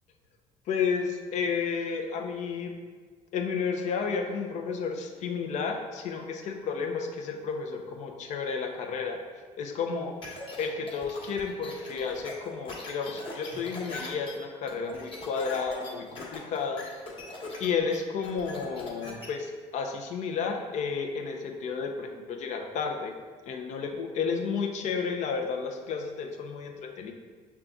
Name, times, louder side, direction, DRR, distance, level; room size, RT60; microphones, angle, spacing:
voice 1, 0.7-2.7 3.3-9.2 9.6-10.1 10.6-16.9 17.6-23.1 23.5-27.1, left 5 dB, 60° left, 3 dB, 0.6 m, -32 dB
sound 1, 10.2-19.3, left 2 dB, 40° left, 1.2 m, -41 dB
5.5 x 2.4 x 3.8 m, 1.5 s
supercardioid pair, 90°, 14 cm